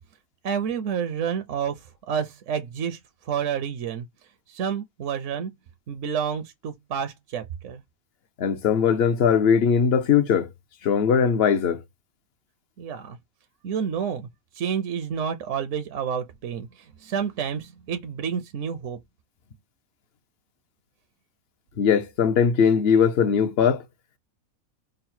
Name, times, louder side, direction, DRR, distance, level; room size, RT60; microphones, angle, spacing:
voice 1, 0.4-3.0 3.2-4.1 4.5-5.5 5.9-7.8 12.8-13.2 13.6-14.3 14.5-19.0, right 7 dB, 65° right, 0.9 m, -29 dB
voice 2, 8.4-10.5 10.8-11.8 21.8-23.8, left 7 dB, 55° left, 0.7 m, -20 dB
3.8 x 2.0 x 4.2 m
omnidirectional pair, 1.5 m